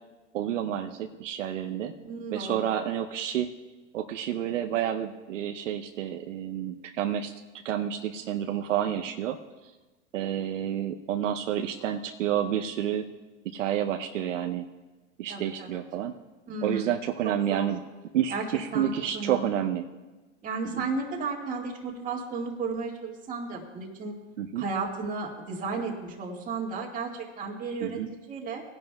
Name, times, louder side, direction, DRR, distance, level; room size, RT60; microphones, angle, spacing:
voice 1, 0.3-1.9 2.3-3.5 3.9-7.3 7.6-9.4 10.1-13.1 13.4-14.7 15.2-16.1 16.6-17.8 18.1-19.8 20.6-20.9 24.4-24.6 27.8-28.1, right 10 dB, 85° right, 4 dB, 0.7 m, -29 dB
voice 2, 2.0-2.6 15.3-15.8 16.5-16.9 17.2-17.7 18.3-18.4 18.7-19.5 20.4-24.1 24.6-28.0 28.3-28.6, right 4 dB, 20° right, -2 dB, 1.8 m, -33 dB
19.0 x 10.5 x 2.3 m, 1.2 s
hypercardioid pair, 125°, 37 cm